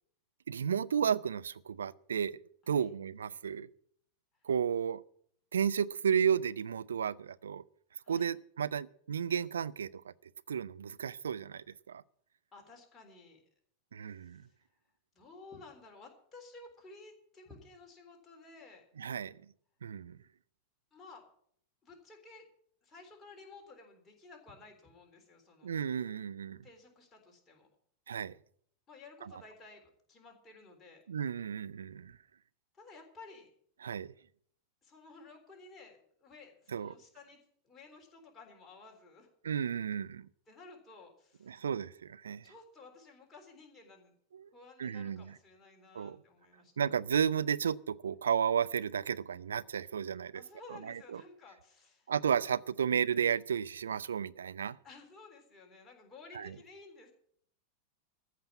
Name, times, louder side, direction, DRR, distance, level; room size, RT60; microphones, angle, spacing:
voice 1, 0.5-2.4 2.7-3.7 4.4-5.0 5.5-7.6 8.1-10.1 10.5-12.0 13.9-14.4 19.0-19.4 19.8-20.2 25.6-26.6 28.1-28.4 29.2-29.4 31.1-32.2 33.8-34.1 36.7-37.0 39.4-40.3 41.5-42.5 44.3-44.5 44.8-45.3 45.9-46.2 46.8-50.4 50.7-51.2 52.1-54.8 56.3-56.5, right 7 dB, 70° right, 16 dB, 0.4 m, -33 dB
voice 2, 12.5-13.4 14.1-14.6 15.1-18.8 20.9-21.2 21.8-22.5 22.8-25.8 26.6-27.7 28.9-31.1 32.7-33.5 34.8-37.4 37.6-39.3 40.5-41.7 42.4-44.1 44.5-46.7 50.3-52.1 54.8-57.1, left 3 dB, 20° left, 1 dB, 3.6 m, -54 dB
14.0 x 5.8 x 9.8 m, 0.64 s
figure-of-eight pair, 90°, 0 cm